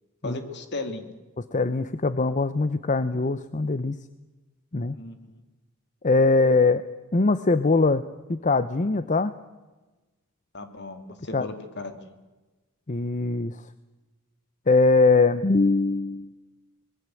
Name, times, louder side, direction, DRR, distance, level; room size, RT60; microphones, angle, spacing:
voice 1, 0.2-1.1 4.9-5.4 10.5-12.1, left 2 dB, 55° left, 8 dB, 2.7 m, -36 dB
voice 2, 1.5-4.0 4.7-5.0 6.0-6.8 7.1-9.3 11.3-11.5 12.9-13.6 14.7-16.3, left 3 dB, 35° left, 13 dB, 0.7 m, -22 dB
25.0 x 20.5 x 7.8 m, 1.2 s
head